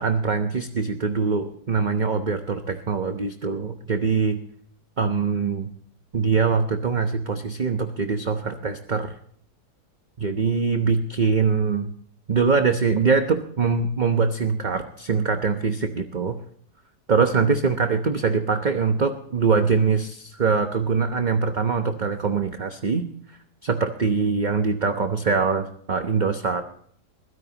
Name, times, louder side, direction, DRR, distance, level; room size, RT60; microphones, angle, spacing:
voice 1, 0.0-4.4 5.0-5.7 6.1-9.1 10.2-11.9 12.3-16.4 17.1-23.1 23.6-26.7, right 5 dB, 35° right, 6 dB, 0.9 m, -23 dB
22.5 x 16.0 x 2.9 m, 0.62 s
omnidirectional pair, 1.8 m